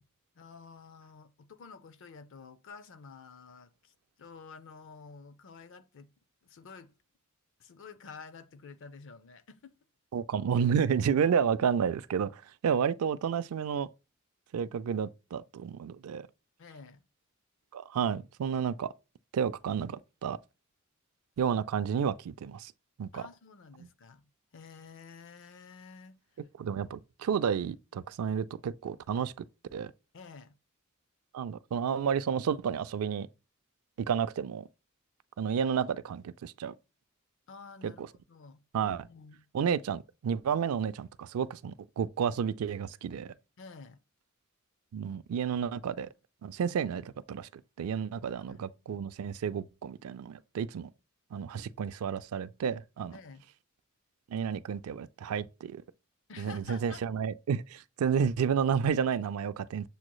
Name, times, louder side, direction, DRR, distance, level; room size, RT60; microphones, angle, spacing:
voice 1, 0.3-6.1 6.4-6.9 7.6-9.7 16.6-17.0 23.1-26.2 30.1-30.6 37.5-39.8 43.6-44.0 48.5-48.7 53.1-53.4 56.3-57.0, left 5 dB, 60° left, 0.5 m, -50 dB
voice 2, 10.1-13.9 14.5-16.3 17.7-18.9 19.3-20.4 21.4-22.7 23.0-23.3 23.8-23.9 26.6-29.4 29.7-29.9 31.3-33.3 34.1-34.7 35.4-36.7 37.8-38.1 38.7-39.0 39.5-43.3 44.9-46.1 46.4-50.9 51.3-53.2 54.3-55.8 56.4-59.9, right 7 dB, 85° right, 0.3 m, -31 dB
7.0 x 3.1 x 2.2 m
head